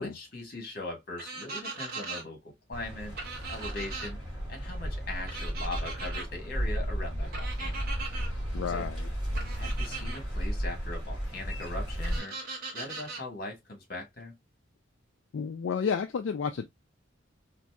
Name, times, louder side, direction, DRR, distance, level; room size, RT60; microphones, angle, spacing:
voice 1, 0.0-3.2 3.5-4.2 4.5-7.9 8.7-8.8 9.5-14.3, left 2 dB, 50° left, 1.4 m, -40 dB
sound 1, 1.2-2.2 3.2-4.1 5.3-6.3 7.3-8.3 9.3-10.2 12.0-13.2, right 4 dB, 50° right, 1.0 m, -39 dB
sound 2, 2.7-12.2, equal, ahead, 2.5 m, -34 dB
voice 2, 8.2-9.1 15.3-16.7, left 6 dB, 70° left, 0.4 m, -32 dB
4.1 x 2.6 x 2.2 m
head